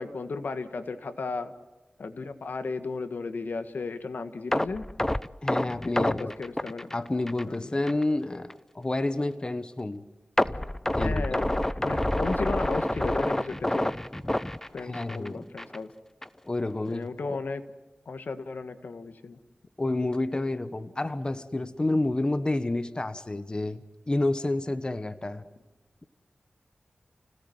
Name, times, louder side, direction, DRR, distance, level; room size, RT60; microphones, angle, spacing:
voice 1, 0.0-1.5 2.0-4.8 5.8-6.9 7.5-7.7 11.0-13.9 14.7-15.9 16.9-17.6 18.0-19.4, left 4 dB, 80° left, 8 dB, 1.6 m, -35 dB
sound 1, 4.5-7.6 7.9-8.0 8.5-8.6 10.4-15.3 15.6-15.8 16.2-16.3, left 1 dB, 15° left, 0.7 m, -28 dB
voice 2, 5.4-6.3 6.9-10.1 10.4-11.5 14.8-15.5 16.5-17.4 19.8-25.4, left 2 dB, 30° left, 11 dB, 1.2 m, -30 dB
29.5 x 17.5 x 8.0 m, 1.2 s
wide cardioid pair, 70°, 3 cm